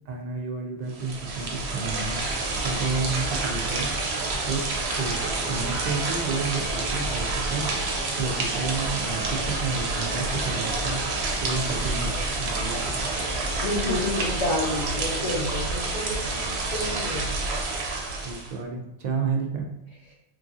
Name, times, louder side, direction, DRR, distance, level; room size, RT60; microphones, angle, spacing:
voice 1, 0.1-2.2 2.6-3.9 4.4-7.9 8.2-11.0 11.4-12.9 18.2-19.7, right 4 dB, 50° right, 1 dB, 0.5 m, -31 dB
sound 1, 0.9-18.5, right 3 dB, 70° right, 0.8 m, -28 dB
sound 2, 9.0-15.1, left 3 dB, 70° left, 0.9 m, -40 dB
voice 2, 13.6-17.3, left 1 dB, 45° left, -5 dB, 0.5 m, -29 dB
2.9 x 2.6 x 2.5 m, 0.86 s
omnidirectional pair, 1.2 m